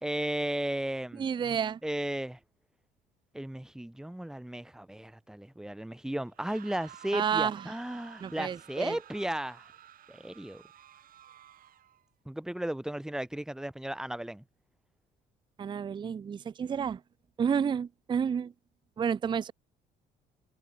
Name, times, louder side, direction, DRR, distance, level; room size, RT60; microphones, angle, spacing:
voice 1, 0.0-2.4 3.3-9.7 10.1-10.6 12.2-14.4, right 1 dB, 5° right, 1.3 m, -35 dB
voice 2, 1.2-1.8 7.1-7.6 8.2-9.0 15.6-17.0 17.4-18.5 19.0-19.5, right 7 dB, 25° right, 0.5 m, -30 dB
sound 1, 6.3-12.0, right 11 dB, 55° right, 4.1 m, -53 dB
cardioid pair, 110°, 17 cm